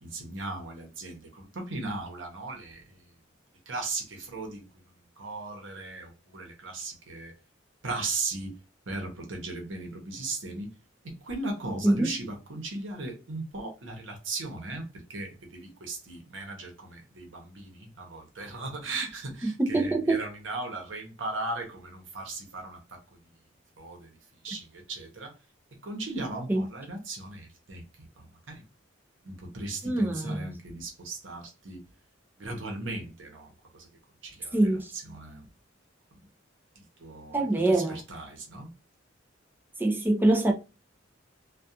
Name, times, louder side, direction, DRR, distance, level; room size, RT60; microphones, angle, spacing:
voice 1, 0.0-3.1 3.7-7.3 7.8-8.6 8.9-10.7 11.0-23.2 23.8-24.2 24.4-25.4 25.8-28.6 29.2-31.9 32.4-33.9 34.2-35.5 36.1-36.3 36.8-38.7, right 2 dB, 80° right, 0.9 m, -37 dB
voice 2, 19.4-20.2 26.5-26.7 29.8-30.5 34.5-34.9 37.3-38.0 39.8-40.5, right 2 dB, 10° right, 0.4 m, -24 dB
2.3 x 2.3 x 2.7 m
head